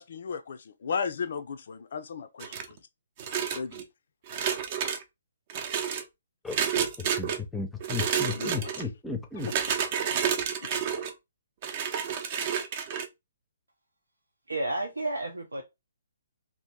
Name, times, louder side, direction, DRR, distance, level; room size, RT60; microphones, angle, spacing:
voice 1, 0.0-2.8 3.5-3.8 8.0-8.9 9.4-9.5 10.6-10.7, left 6 dB, 60° left, 0.4 m, -36 dB
sound 1, 2.4-2.8 3.2-3.8 4.3-5.0 5.5-6.0 6.5-7.4 7.8-8.8 9.4-11.1 11.6-13.1, right 8 dB, 40° right, 0.6 m, -30 dB
voice 2, 7.2-9.5, left 4 dB, 5° left, 0.6 m, -34 dB
voice 3, 14.5-15.6, right 2 dB, 90° right, 0.6 m, -31 dB
2.8 x 2.6 x 3.5 m
figure-of-eight pair, 135°, 0 cm